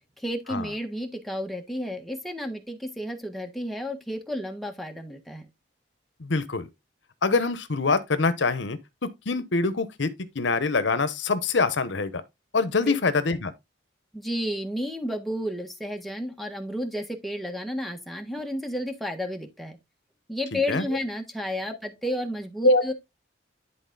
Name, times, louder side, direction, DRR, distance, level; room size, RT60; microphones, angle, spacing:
voice 1, 0.2-5.5 12.8-12.9 14.1-19.8 20.3-22.9, equal, ahead, 1.4 m, -32 dB
voice 2, 6.2-6.7 7.2-10.1 10.3-12.2 12.5-13.5 20.5-20.8 22.6-22.8, left 3 dB, 75° left, 0.9 m, -24 dB
11.0 x 4.1 x 3.9 m
head